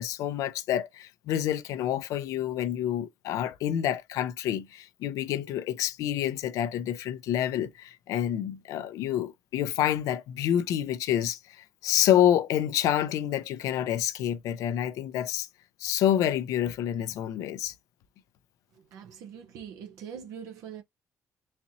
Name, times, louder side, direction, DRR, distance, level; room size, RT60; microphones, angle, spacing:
voice 1, 0.0-15.5 15.8-17.7, left 11 dB, 85° left, 0.5 m, -28 dB
voice 2, 18.7-20.8, right 8 dB, 90° right, 0.7 m, -43 dB
4.1 x 2.9 x 2.6 m
cardioid pair, 100°, 6 cm